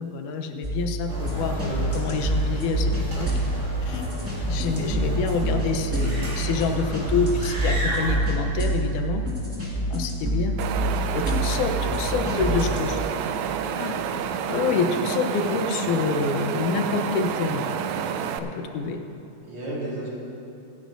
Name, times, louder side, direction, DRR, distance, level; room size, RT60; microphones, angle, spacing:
voice 1, 0.0-3.3 3.9-4.0 4.5-9.2 9.9-10.5 11.1-13.0 13.7-14.0 14.5-17.7 18.4-19.0, left 4 dB, 90° left, 5 dB, 2.4 m, -27 dB
sound 1, 0.6-12.8, right 1 dB, 5° right, 1.6 m, -27 dB
sound 2, 1.1-8.2, right 1 dB, 25° right, 3.1 m, -33 dB
voice 2, 4.8-5.2 11.9-13.2 19.5-20.1, right 1 dB, 45° right, -7 dB, 3.5 m, -35 dB
Wind, 10.6-18.4, right 8 dB, 80° right, 1.8 m, -29 dB
25.0 x 10.0 x 2.6 m, 2.9 s
omnidirectional pair, 3.4 m